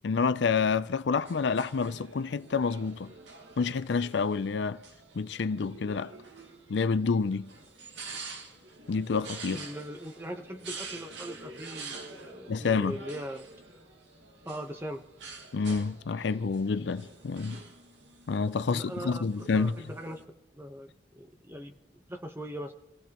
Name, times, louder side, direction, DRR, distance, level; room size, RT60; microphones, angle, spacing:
voice 1, 0.0-3.1 3.6-4.8 5.2-6.1 6.7-7.5 8.9-9.6 12.5-13.0 15.5-17.6 18.3-19.7, left 5 dB, 70° left, 0.5 m, -28 dB
sound 1, 1.1-20.2, right 3 dB, 75° right, 1.9 m, -47 dB
voice 2, 9.5-13.5 14.4-15.0 18.6-19.3 19.5-20.2 20.5-22.7, equal, 10° right, 1.0 m, -40 dB
26.5 x 16.5 x 3.0 m
head